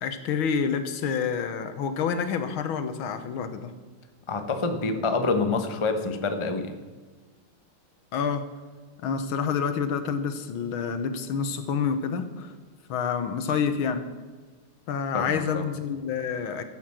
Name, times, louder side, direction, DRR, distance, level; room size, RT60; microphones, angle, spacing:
voice 1, 0.0-3.7 8.1-8.4 9.0-12.5 12.9-14.1 14.9-16.6, left 6 dB, 75° left, 9 dB, 1.8 m, -28 dB
voice 2, 4.3-6.8 15.1-15.6, left 3 dB, 35° left, 6 dB, 0.5 m, -27 dB
14.5 x 7.8 x 7.3 m, 1.3 s
omnidirectional pair, 2.3 m